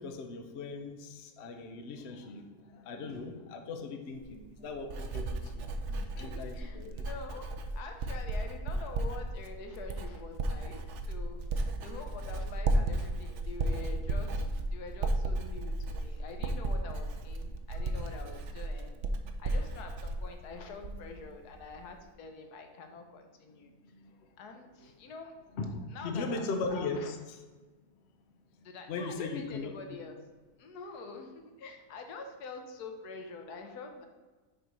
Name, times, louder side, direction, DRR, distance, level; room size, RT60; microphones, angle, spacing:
voice 1, 0.0-5.7 6.2-6.9 23.9-24.1 25.6-27.2 28.9-29.7, left 3 dB, 50° left, 4 dB, 0.9 m, -38 dB
Writing, 4.2-21.2 21.5-21.9, right 2 dB, 60° right, 0.8 m, -34 dB
voice 2, 5.9-19.0 19.4-23.7 24.4-25.4 25.9-27.1 28.6-30.2 30.6-34.1, left 4 dB, 80° left, 4 dB, 1.4 m, -46 dB
6.5 x 4.5 x 5.2 m, 1.3 s
omnidirectional pair, 1.6 m